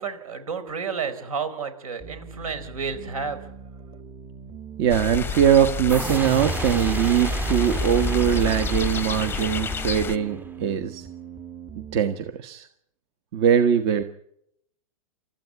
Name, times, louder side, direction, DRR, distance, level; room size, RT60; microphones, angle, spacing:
voice 1, 0.0-3.5, right 5 dB, 75° right, 11 dB, 4.5 m, -31 dB
sound 1, 2.0-12.0, right 6 dB, 25° right, 2.0 m, -42 dB
voice 2, 4.8-11.1 11.9-12.7 13.3-14.0, right 9 dB, 45° right, 9 dB, 1.4 m, -21 dB
sound 2, 4.9-10.2, left 7 dB, 10° left, 0.8 m, -31 dB
sound 3, 5.9-10.6, right 1 dB, 10° right, 2.1 m, -30 dB
29.0 x 14.0 x 8.4 m, 0.75 s
hypercardioid pair, 110°, 18 cm